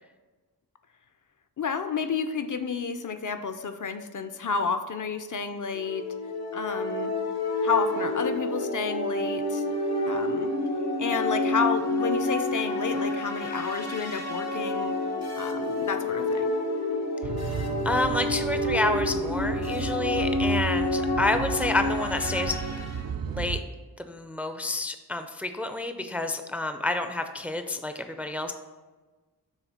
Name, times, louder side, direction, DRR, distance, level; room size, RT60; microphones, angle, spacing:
voice 1, 1.6-6.1 6.5-7.1 7.6-9.6 10.1-10.5 11.0-15.0 15.4-16.5, left 5 dB, 55° left, 9 dB, 0.5 m, -30 dB
sound 1, 5.7-23.0, left 2 dB, 90° left, 1.3 m, -29 dB
sound 2, 17.2-23.6, right 7 dB, 65° right, 0.5 m, -34 dB
voice 2, 17.5-22.8 23.3-23.6 24.0-28.5, left 2 dB, 5° right, 8 dB, 0.4 m, -29 dB
7.1 x 3.2 x 5.6 m, 1.3 s
wide cardioid pair, 105°, 38 cm